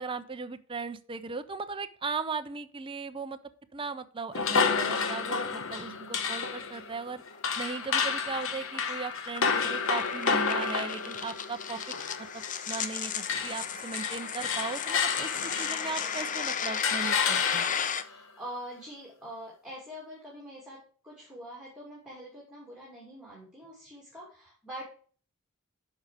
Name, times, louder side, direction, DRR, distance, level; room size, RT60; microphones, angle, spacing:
voice 1, 0.0-3.4 3.7-7.2 7.6-11.8 12.3-15.3 15.6-17.7, right 4 dB, 25° right, 9 dB, 0.5 m, -37 dB
sound 1, 4.3-13.0 13.2-16.3 16.8-18.0, left 5 dB, 65° left, 1.0 m, -30 dB
sound 2, 7.3-18.0, left 7 dB, 40° left, 0.6 m, -35 dB
voice 2, 17.9-24.8, equal, 5° right, -4 dB, 2.6 m, -44 dB
9.5 x 5.7 x 4.9 m, 0.43 s
head